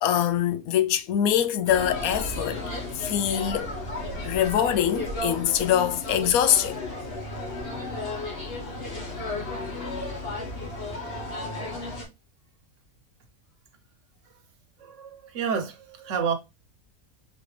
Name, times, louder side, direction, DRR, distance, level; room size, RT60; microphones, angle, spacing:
voice 1, 0.0-2.6 2.9-3.7 4.2-6.8 9.5-9.6, left 10 dB, 85° left, 1.0 m, -24 dB
sound 1, 1.7-12.0, left 2 dB, 45° left, 1.3 m, -34 dB
voice 2, 14.8-16.3, right 6 dB, 65° right, 1.1 m, -29 dB
4.0 x 3.4 x 3.2 m
omnidirectional pair, 1.5 m